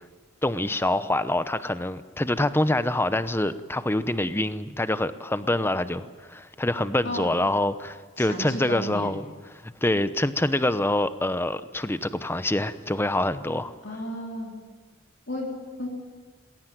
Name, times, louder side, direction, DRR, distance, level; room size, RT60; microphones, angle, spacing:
voice 1, 0.4-9.3 9.6-13.7, left 1 dB, 10° left, 13 dB, 0.7 m, -26 dB
voice 2, 8.2-9.2 13.8-14.5 15.3-15.5 15.8-15.9, left 1 dB, 55° left, -1 dB, 3.7 m, -33 dB
20.0 x 18.0 x 9.2 m, 1.4 s
head